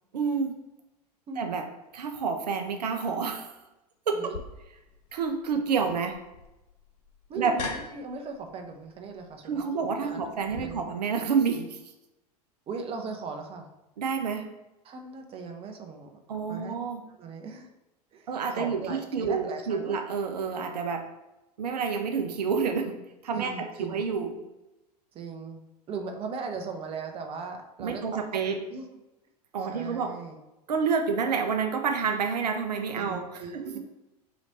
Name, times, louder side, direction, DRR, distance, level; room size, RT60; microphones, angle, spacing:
voice 1, 0.1-0.5 1.4-1.7 1.9-3.6 4.1-4.3 5.1-6.2 7.3-7.5 9.4-11.8 14.0-14.5 16.3-17.0 18.3-21.0 21.6-23.0 23.2-24.4 27.8-28.6 29.5-30.1 30.7-33.8, right 5 dB, 75° right, 5 dB, 0.5 m, -29 dB
sound 1, 4.3-10.6, left 4 dB, 70° left, 0.6 m, -43 dB
voice 2, 7.3-10.9 12.7-13.7 14.8-16.2 16.5-16.7 17.2-17.7 18.1-20.0 23.3-24.0 25.1-25.6 25.9-28.0 28.3-28.4 28.7-28.9 29.6-30.4 32.9-33.8, right 4 dB, 30° right, 4 dB, 0.6 m, -38 dB
4.0 x 3.1 x 4.0 m, 0.96 s
figure-of-eight pair, 85°, 21 cm